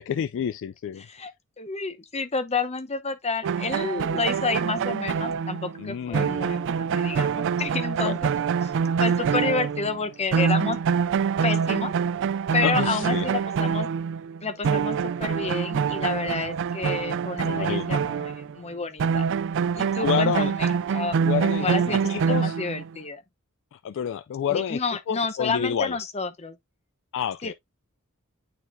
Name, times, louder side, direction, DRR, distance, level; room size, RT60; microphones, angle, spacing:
voice 1, 0.0-1.0 5.8-6.4 8.0-8.2 12.6-13.3 17.4-18.0 20.0-20.5 21.2-22.6 23.7-24.8 25.1-26.0 27.1-27.5, left 8 dB, 60° left, 0.3 m, -29 dB
voice 2, 1.0-8.3 8.6-8.7 9.0-10.8 11.4-11.9 12.5-13.9 14.4-19.2 19.7-21.2 21.6-22.0 22.3-23.2 24.5-26.6 27.4-27.5, left 4 dB, 30° left, 0.8 m, -30 dB
sound 1, 3.4-10.1 10.3-18.5 19.0-22.9, right 6 dB, 60° right, 0.3 m, -25 dB
8.9 x 4.1 x 2.6 m
head